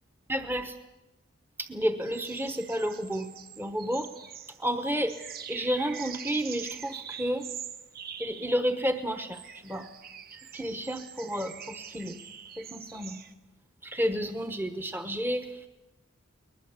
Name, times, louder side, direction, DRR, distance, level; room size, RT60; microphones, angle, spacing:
voice 1, 0.3-0.8 1.6-3.3 3.6-4.1 4.6-5.2 5.5-7.5 8.2-9.9 10.3-12.2 12.6-13.2 13.8-15.7, equal, 10° right, 9 dB, 1.1 m, -31 dB
sound 1, 2.0-13.3, right 8 dB, 45° right, 1.2 m, -44 dB
21.5 x 21.0 x 8.2 m, 1.0 s
head